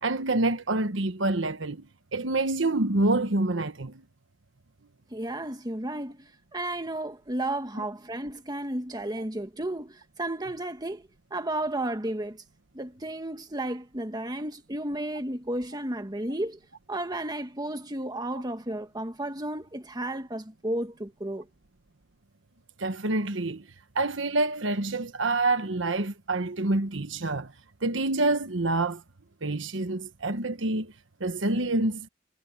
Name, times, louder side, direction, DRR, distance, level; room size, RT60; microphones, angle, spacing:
voice 1, 0.0-1.9 2.1-4.0 22.8-23.6 23.9-27.5 27.8-29.0 29.4-30.9 31.2-32.1, right 2 dB, 75° right, 1.3 m, -27 dB
voice 2, 5.1-12.4 12.7-16.6 16.9-21.5, right 1 dB, 20° right, 1.7 m, -33 dB
head